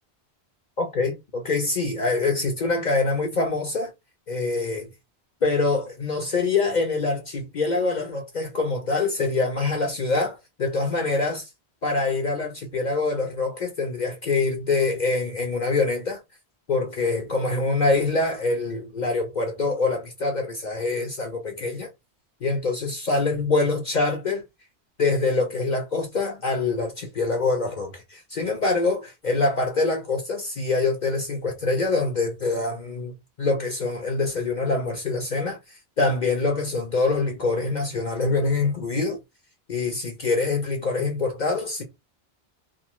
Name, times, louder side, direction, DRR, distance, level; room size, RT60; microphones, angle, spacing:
voice 1, 0.8-3.9 4.3-4.9 5.4-11.5 11.8-16.2 16.7-21.9 22.4-24.4 25.0-33.1 33.4-39.2 39.7-41.8, left 3 dB, 50° left, 0.7 m, -25 dB
2.6 x 2.5 x 2.9 m
omnidirectional pair, 1.1 m